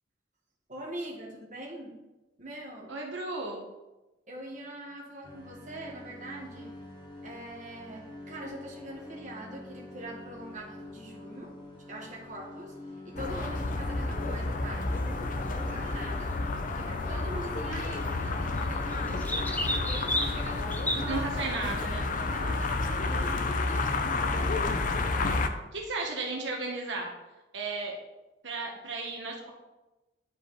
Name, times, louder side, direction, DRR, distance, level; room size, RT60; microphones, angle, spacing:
voice 1, 0.7-2.0 2.4-2.9 4.3-6.7 7.2-12.8 13.0-16.3 16.7-19.5 19.8-21.7 22.3-24.8, right 1 dB, 45° right, -2 dB, 1.5 m, -43 dB
voice 2, 2.9-3.6 21.1-22.1 25.7-27.1 27.5-28.0 28.4-29.5, right 3 dB, 80° right, 0 dB, 1.1 m, -34 dB
sound 1, 5.2-21.1, left 2 dB, 25° left, 1.4 m, -46 dB
sound 2, 13.2-25.5, left 3 dB, 45° left, 0.5 m, -30 dB
sound 3, 14.9-21.0, left 1 dB, 10° left, 0.6 m, -36 dB
10.0 x 4.8 x 3.1 m, 1.1 s
head